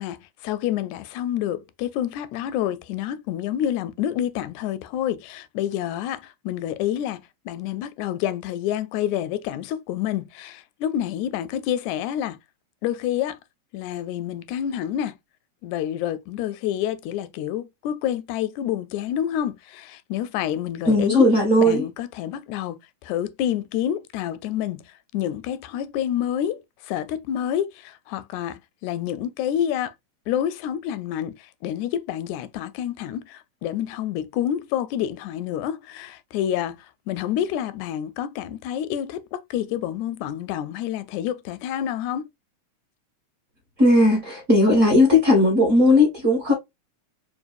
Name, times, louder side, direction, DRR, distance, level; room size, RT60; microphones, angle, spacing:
voice 1, 0.0-12.4 12.8-13.4 13.7-15.2 15.6-21.3 21.6-24.8 25.1-29.9 30.3-42.3, left 10 dB, 85° left, 1.9 m, -28 dB
voice 2, 20.8-21.8 43.8-46.5, left 1 dB, 35° right, 1.4 m, -17 dB
4.6 x 2.7 x 2.5 m
omnidirectional pair, 3.3 m